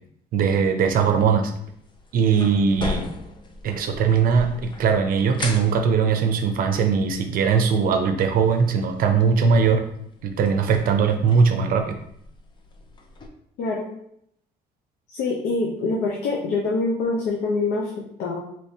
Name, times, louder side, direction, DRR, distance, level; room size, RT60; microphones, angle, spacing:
voice 1, 0.3-1.5 2.1-3.1 3.6-9.8 10.2-12.0, right 6 dB, 60° right, 6 dB, 0.6 m, -20 dB
sound 1, 1.6-13.3, left 3 dB, 30° left, 0.5 m, -39 dB
voice 2, 13.6-13.9 15.1-18.4, left 3 dB, 80° left, -1 dB, 0.6 m, -25 dB
3.3 x 3.0 x 2.7 m, 0.73 s
cardioid pair, 110°, 17 cm